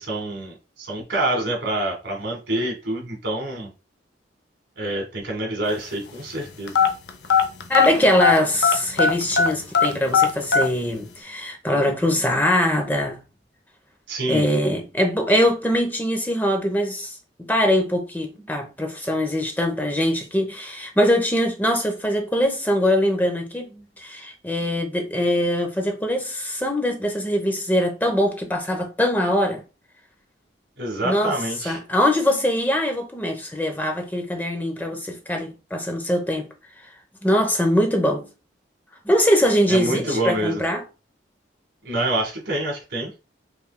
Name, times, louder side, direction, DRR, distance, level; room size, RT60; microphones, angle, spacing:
voice 1, 0.0-3.7 4.8-6.8 14.1-14.5 30.8-31.8 39.7-40.6 41.9-43.1, right 1 dB, 70° right, 1.6 m, -26 dB
sound 1, 6.7-8.4 8.6-10.7, left 6 dB, 60° left, 0.7 m, -17 dB
voice 2, 7.7-13.2 14.3-17.1 17.5-29.6 31.0-31.3 31.6-36.5 37.2-38.2 39.0-40.8, equal, 10° left, 0.8 m, -22 dB
5.6 x 3.3 x 2.2 m
head